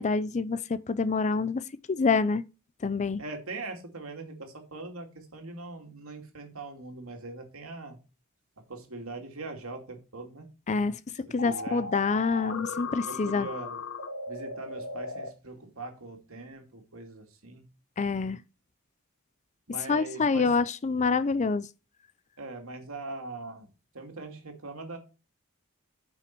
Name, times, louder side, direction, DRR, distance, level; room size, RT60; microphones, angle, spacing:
voice 1, 0.0-1.6 1.9-2.4 2.8-3.2 10.7-11.0 11.3-13.5 18.0-18.4 19.9-21.7, left 4 dB, 35° left, 0.4 m, -26 dB
voice 2, 3.2-8.0 8.7-10.5 11.4-11.9 12.5-13.8 14.3-17.6 19.7-20.5 22.4-23.7 23.9-25.0, right 3 dB, 70° right, 2.7 m, -41 dB
sound 1, 11.4-15.3, left 3 dB, 60° left, 1.4 m, -37 dB
9.3 x 5.7 x 4.6 m
head